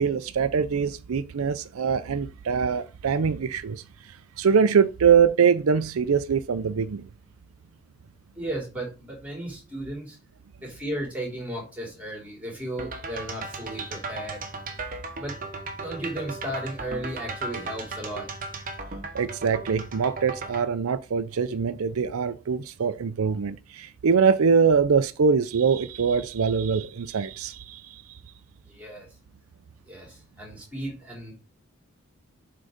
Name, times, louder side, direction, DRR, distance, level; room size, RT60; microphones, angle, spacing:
voice 1, 0.0-3.8 4.4-7.0 19.1-28.0, right 6 dB, 85° right, 0.5 m, -23 dB
voice 2, 8.3-10.2 10.6-14.4 15.1-15.3 15.8-18.3 28.7-29.1 29.9-31.3, right 1 dB, 5° right, 3.3 m, -35 dB
sound 1, 12.8-20.7, right 3 dB, 40° right, 1.0 m, -36 dB
7.8 x 3.8 x 5.1 m
head